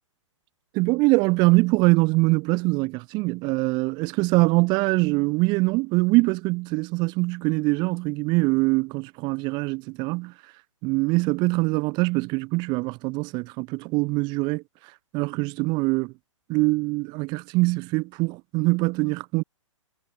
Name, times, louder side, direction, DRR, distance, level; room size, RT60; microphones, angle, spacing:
voice 1, 0.7-10.3 10.8-14.6 15.1-16.1 16.5-19.4, right 25 dB, 25° right, 6.6 m, -23 dB
figure-of-eight pair, 120°, 17 cm